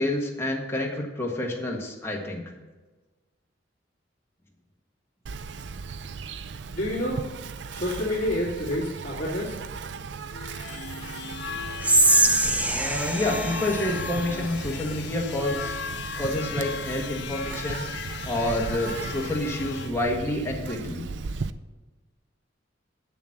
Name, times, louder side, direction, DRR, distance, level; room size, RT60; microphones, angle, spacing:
voice 1, 0.0-2.5 12.7-15.8 16.2-21.0, left 1 dB, 15° left, -1 dB, 1.6 m, -28 dB
Insect, 5.3-21.5, right 4 dB, 65° right, 0.4 m, -37 dB
voice 2, 6.7-7.2 7.7-9.6, left 1 dB, 40° left, -9 dB, 2.7 m, -28 dB
sound 1, 10.3-19.9, left 6 dB, 75° left, 0.7 m, -37 dB
Whispering, 11.8-15.0, right 2 dB, 10° right, 0.5 m, -24 dB
8.1 x 7.1 x 5.9 m, 1.3 s
head